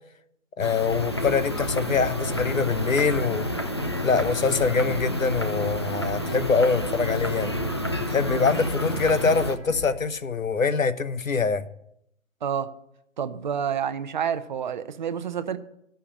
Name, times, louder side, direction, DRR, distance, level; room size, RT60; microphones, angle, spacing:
voice 1, 0.6-3.5 4.0-7.5 8.1-11.7, left 5 dB, 85° left, 13 dB, 1.1 m, -24 dB
sound 1, 0.6-9.6, left 1 dB, 20° left, 0.4 m, -30 dB
sound 2, 0.9-10.0, left 1 dB, 60° left, 5.0 m, -37 dB
voice 2, 12.4-12.7 13.2-15.6, right 8 dB, 35° right, 12 dB, 0.7 m, -28 dB
13.5 x 5.8 x 8.8 m, 0.77 s
figure-of-eight pair, 140°, 39 cm